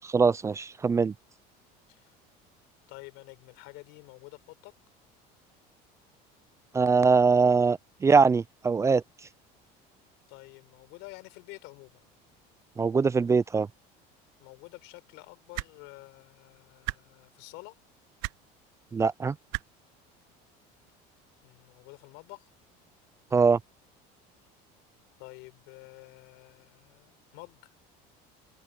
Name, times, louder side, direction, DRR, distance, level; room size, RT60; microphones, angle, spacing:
voice 1, 0.0-1.1 6.7-9.0 12.8-13.7 18.9-19.3 23.3-23.6, right 5 dB, 15° right, 0.4 m, -22 dB
voice 2, 2.9-4.7 10.3-12.0 14.4-17.8 21.4-22.5 25.2-27.7, left 26 dB, 75° left, 6.2 m, -49 dB
sound 1, 15.5-15.7 16.8-17.0 18.2-18.4 19.5-19.6 20.9-21.0, right 22 dB, 75° right, 0.8 m, -33 dB
cardioid pair, 145°, 19 cm